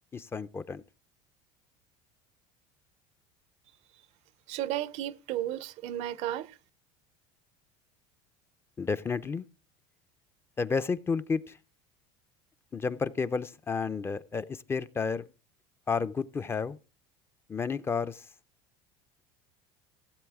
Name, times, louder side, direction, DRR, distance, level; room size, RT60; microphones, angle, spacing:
voice 1, 0.1-0.8 8.8-9.5 10.6-11.6 12.7-15.3 15.9-16.8 17.5-18.2, left 5 dB, 20° left, 0.4 m, -31 dB
voice 2, 4.5-6.5, right 12 dB, 60° right, 0.5 m, -33 dB
16.0 x 7.7 x 3.5 m
supercardioid pair, 125°, 13 cm